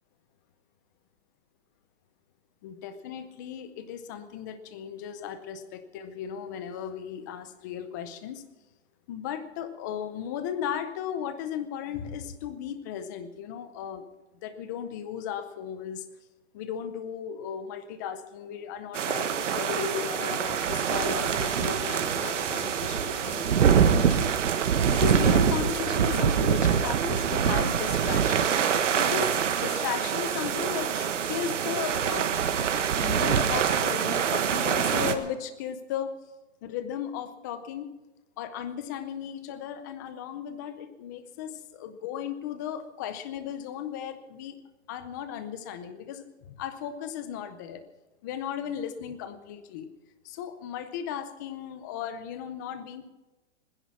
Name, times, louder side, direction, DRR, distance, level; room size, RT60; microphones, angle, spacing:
voice 1, 2.6-8.4 9.1-14.1 14.4-16.1 16.5-24.3 24.9-32.3 33.0-36.2 36.6-37.9 38.4-44.6 44.9-47.8 48.2-49.9 50.2-53.1, left 8 dB, 15° left, 11 dB, 0.5 m, -36 dB
sound 1, 18.9-35.1, right 7 dB, 75° right, 1.5 m, -25 dB
sound 2, 20.5-27.3, right 5 dB, 15° right, 2.4 m, -39 dB
20.0 x 10.0 x 5.9 m, 1.1 s
hypercardioid pair, 160°, 37 cm